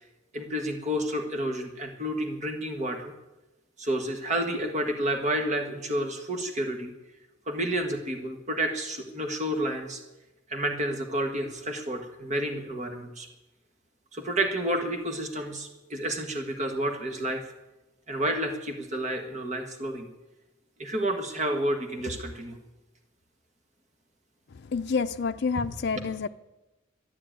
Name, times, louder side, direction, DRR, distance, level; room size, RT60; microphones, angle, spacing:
voice 1, 0.3-3.1 3.8-6.9 7.5-10.0 10.5-13.3 14.1-17.4 18.1-20.1 20.8-22.6, right 1 dB, 35° right, 1.6 m, -30 dB
voice 2, 24.5-26.3, left 5 dB, 55° left, 0.5 m, -29 dB
13.0 x 11.0 x 9.0 m
head